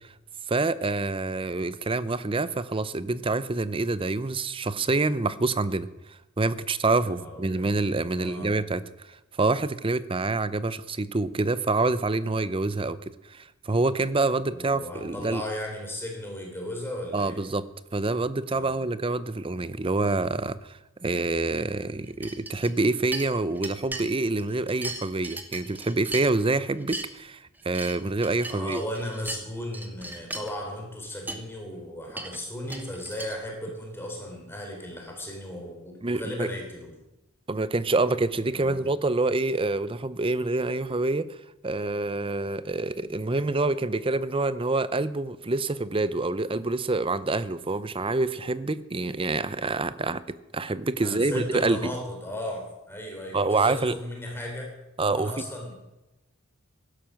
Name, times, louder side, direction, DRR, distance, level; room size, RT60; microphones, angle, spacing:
voice 1, 0.5-8.8 9.1-15.4 17.1-17.6 17.9-28.8 36.0-36.5 37.5-51.8 53.3-54.0 55.0-55.3, right 3 dB, 25° right, 15 dB, 0.6 m, -27 dB
voice 2, 7.0-7.7 8.1-8.5 14.4-17.4 18.5-18.8 28.5-36.9 38.5-38.9 51.0-54.7 55.1-55.8, left 1 dB, 10° left, 0 dB, 3.6 m, -36 dB
sound 1, 22.2-22.9 23.1-24.1 24.4-26.5 26.8-27.1 27.5-29.4 29.7-30.5 31.0-31.1 31.3-31.4 32.1-33.4, right 2 dB, 10° right, 1.2 m, -37 dB
16.5 x 11.5 x 6.4 m, 0.98 s
head